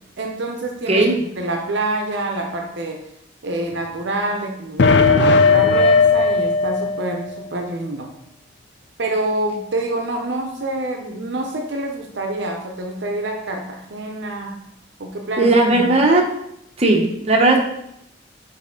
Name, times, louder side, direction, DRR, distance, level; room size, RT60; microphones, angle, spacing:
voice 1, 0.2-1.0 1.4-3.0 3.4-8.1 9.0-14.6 15.0-15.8, right 2 dB, 60° right, 2 dB, 0.7 m, -26 dB
sound 1, 4.8-7.5, left 4 dB, 60° left, 0.4 m, -16 dB
voice 2, 15.4-16.3 16.8-17.6, right 2 dB, 30° right, 1 dB, 0.9 m, -16 dB
6.3 x 4.2 x 3.7 m, 0.78 s
head